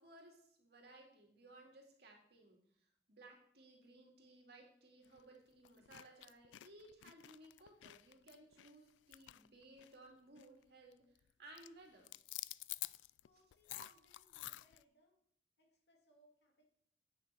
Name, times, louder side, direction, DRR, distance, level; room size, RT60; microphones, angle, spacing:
voice 1, 0.0-12.1 13.7-13.9, right 2 dB, 60° right, 1 dB, 2.4 m, -60 dB
sound 1, 5.0-5.2 5.6-10.1 10.4-10.6 10.9-11.3 11.6-14.8, left 17 dB, 85° left, 0.3 m, -50 dB
voice 2, 13.2-15.2 15.6-16.7, equal, 65° left, 1 dB, 2.5 m, -72 dB
8.6 x 6.8 x 5.6 m, 0.64 s
head